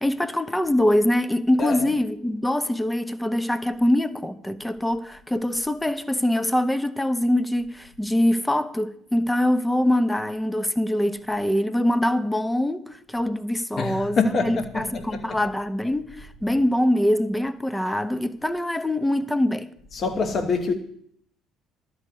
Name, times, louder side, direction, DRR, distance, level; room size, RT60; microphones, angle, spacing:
voice 1, 0.0-19.7, left 1 dB, 10° left, 0.8 m, -24 dB
voice 2, 1.6-2.0 13.8-15.4 19.9-20.7, left 4 dB, 45° left, 1.0 m, -26 dB
12.5 x 4.9 x 8.4 m
hypercardioid pair, 55°, 0 cm